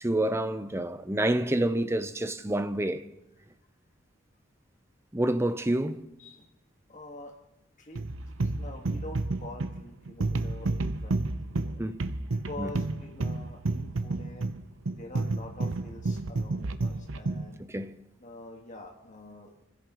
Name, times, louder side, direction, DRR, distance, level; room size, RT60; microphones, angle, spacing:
voice 1, 0.0-3.0 5.1-6.0 11.8-12.0 12.6-12.7 17.7-17.9, right 1 dB, 15° right, 0.7 m, -28 dB
voice 2, 6.9-7.3 7.8-8.0 8.4-10.7 11.0-11.8 12.3-14.5 15.0-17.6 18.2-19.5, left 2 dB, 40° left, 1.8 m, -45 dB
sound 1, 8.0-17.5, right 2 dB, 85° right, 0.8 m, -31 dB
27.5 x 16.0 x 3.1 m
head